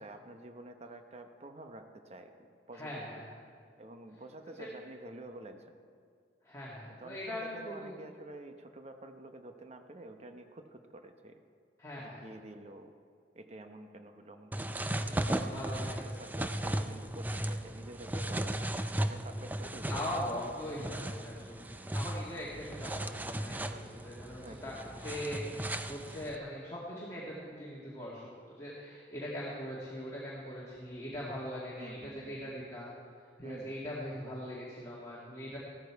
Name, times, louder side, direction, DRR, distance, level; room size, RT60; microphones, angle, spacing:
voice 1, 0.0-3.2 3.8-5.7 7.0-11.4 12.0-12.9 13.3-18.7 19.0-20.3 24.4-24.9 31.8-32.5 33.4-33.8, right 1 dB, 35° right, 6 dB, 0.9 m, -49 dB
voice 2, 2.7-3.3 6.4-7.9 11.8-12.2 15.3-16.1 19.6-32.9 33.4-35.6, equal, 20° left, -7 dB, 2.1 m, -41 dB
sound 1, 14.5-26.4, right 1 dB, 10° right, 0.4 m, -36 dB
15.5 x 13.5 x 4.7 m, 2.2 s
head